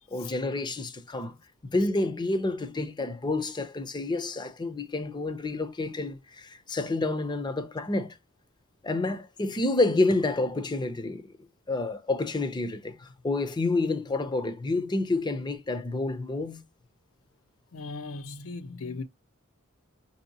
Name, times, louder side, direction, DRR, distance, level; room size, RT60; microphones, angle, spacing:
voice 1, 0.1-1.4 1.6-8.1 8.8-11.4 11.7-16.6, left 2 dB, 20° left, 0.5 m, -29 dB
voice 2, 17.7-19.0, left 3 dB, 70° left, 0.6 m, -37 dB
5.8 x 2.8 x 2.7 m
head